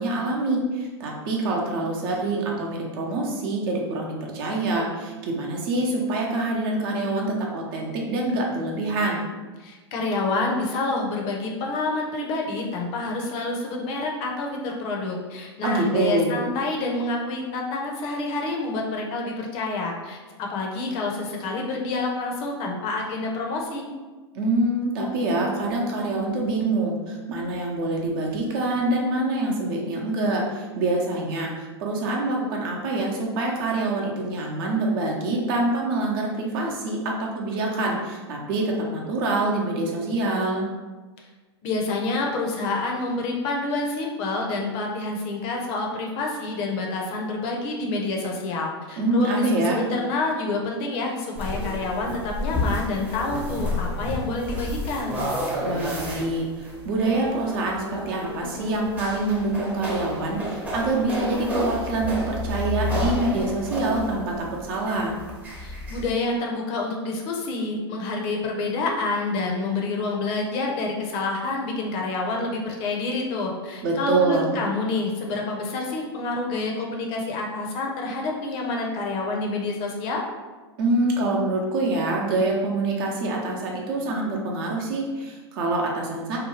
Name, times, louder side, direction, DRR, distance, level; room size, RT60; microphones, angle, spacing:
voice 1, 0.0-9.3 15.6-16.4 24.3-40.7 49.0-49.9 55.6-65.1 73.8-74.6 80.8-86.4, right 2 dB, 55° right, -1 dB, 0.7 m, -25 dB
voice 2, 9.6-23.9 41.6-49.4 49.7-55.2 65.5-80.2, left 3 dB, 45° left, 0 dB, 0.6 m, -28 dB
sound 1, 51.4-66.1, left 1 dB, 10° right, 0.7 m, -31 dB
2.8 x 2.2 x 3.1 m, 1.3 s
hypercardioid pair, 100°, 14 cm